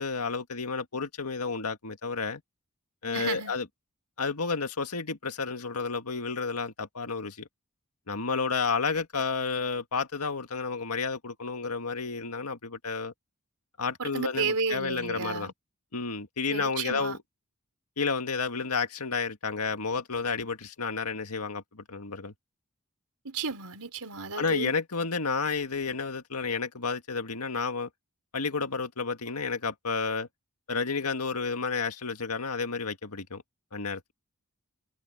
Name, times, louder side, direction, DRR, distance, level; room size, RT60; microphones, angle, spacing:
voice 1, 0.0-2.4 3.0-3.7 4.2-7.5 8.1-13.1 13.8-15.5 15.9-17.2 18.0-22.3 24.4-27.9 28.3-30.3 30.7-33.4 33.7-34.1, left 4 dB, 90° left, 1.9 m, -31 dB
voice 2, 3.1-3.5 14.0-15.5 16.5-17.2 23.2-24.7, right 4 dB, 85° right, 4.2 m, -32 dB
head